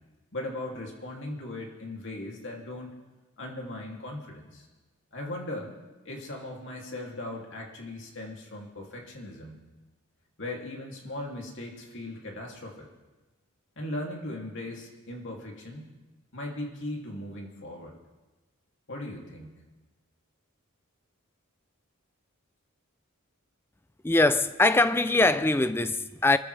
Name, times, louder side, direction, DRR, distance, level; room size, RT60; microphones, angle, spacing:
voice 1, 0.3-2.9 3.4-4.7 5.1-5.7 6.0-9.6 10.4-12.9 13.8-16.0 16.3-18.0 18.9-19.6, left 1 dB, 60° left, 2.7 m, -38 dB
voice 2, 24.0-26.4, left 2 dB, 10° left, 0.4 m, -22 dB
25.5 x 14.5 x 3.3 m
head